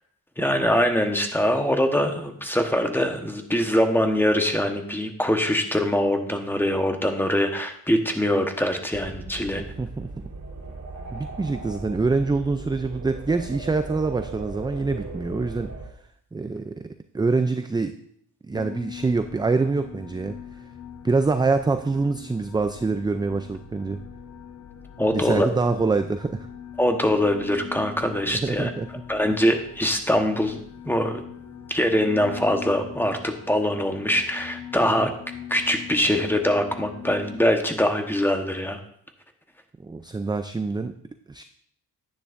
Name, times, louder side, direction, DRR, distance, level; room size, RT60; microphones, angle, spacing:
voice 1, 0.4-9.6 25.0-25.5 26.8-28.7 29.1-30.6 30.8-31.2 31.7-35.1 35.5-38.8, equal, 5° left, 5 dB, 1.1 m, -23 dB
sound 1, 8.9-15.9, right 3 dB, 45° right, 2.8 m, -38 dB
voice 2, 9.6-10.2 11.1-15.7 16.3-18.0 18.4-20.3 21.0-24.0 25.1-26.5 28.3-28.9 34.8-35.1 39.8-40.9 41.3-41.4, right 3 dB, 10° right, 9 dB, 0.3 m, -25 dB
sound 2, 18.5-37.4, left 8 dB, 40° left, 1.0 m, -42 dB
10.0 x 9.7 x 2.5 m, 0.67 s
cardioid pair, 95°, 39 cm